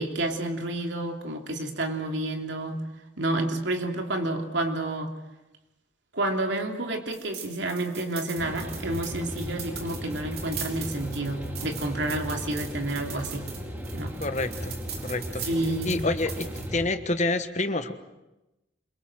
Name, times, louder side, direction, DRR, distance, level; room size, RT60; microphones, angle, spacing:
voice 1, 0.0-2.8 3.2-5.1 6.1-13.5 13.9-14.1 15.4-16.0, right 1 dB, 70° right, 3 dB, 3.1 m, -30 dB
sound 1, 7.1-16.7, right 7 dB, 55° right, 4.3 m, -41 dB
sound 2, 8.4-16.9, equal, 10° right, 2.8 m, -36 dB
voice 2, 14.2-14.8 15.0-15.4 15.8-17.9, left 2 dB, 35° left, 9 dB, 1.4 m, -28 dB
26.5 x 23.5 x 7.8 m, 0.98 s
head